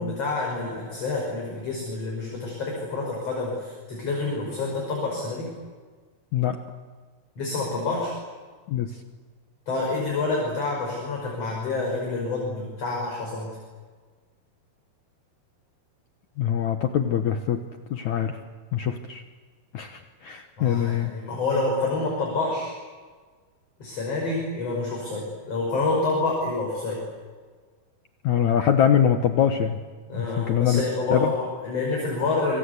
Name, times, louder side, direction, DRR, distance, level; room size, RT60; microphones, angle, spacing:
voice 1, 0.0-5.5 7.4-8.1 9.7-13.6 20.6-22.7 23.8-27.0 30.1-32.6, left 3 dB, 35° left, -2 dB, 6.4 m, -28 dB
voice 2, 16.4-17.6 17.9-18.4 18.7-19.2 19.7-21.1 28.2-29.8 30.2-30.8 31.1-31.3, left 9 dB, 70° left, 6 dB, 1.9 m, -23 dB
26.5 x 23.5 x 8.2 m, 1.5 s
omnidirectional pair, 4.7 m